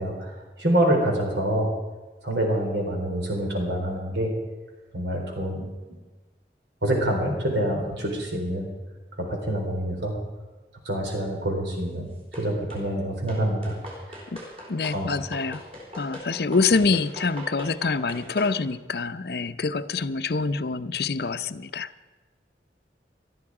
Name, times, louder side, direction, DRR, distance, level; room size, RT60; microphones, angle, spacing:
voice 1, 0.0-1.7 2.2-4.3 4.9-5.7 6.8-8.7 9.2-10.1 10.8-12.1 12.4-13.7 14.1-14.2 14.9-15.1, right 1 dB, 85° right, 1 dB, 4.1 m, -26 dB
sound 1, 12.3-12.9 13.3-18.6, equal, 35° right, 4.3 m, -41 dB
voice 2, 14.3-15.6 16.0-21.9, left 4 dB, 65° left, 12 dB, 0.6 m, -26 dB
19.5 x 13.0 x 4.8 m, 1.3 s
head